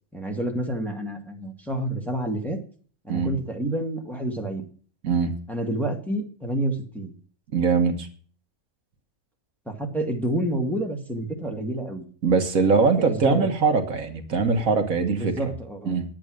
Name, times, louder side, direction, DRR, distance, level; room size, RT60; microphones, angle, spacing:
voice 1, 0.1-2.6 3.0-4.7 5.5-7.1 9.7-12.0 12.6-13.5 15.2-15.9, right 1 dB, ahead, 1 dB, 1.9 m, -29 dB
voice 2, 5.0-5.3 7.5-8.1 12.2-15.3 15.9-16.0, right 4 dB, 65° right, 5 dB, 1.7 m, -22 dB
10.0 x 8.8 x 6.4 m, 0.43 s
omnidirectional pair, 1.6 m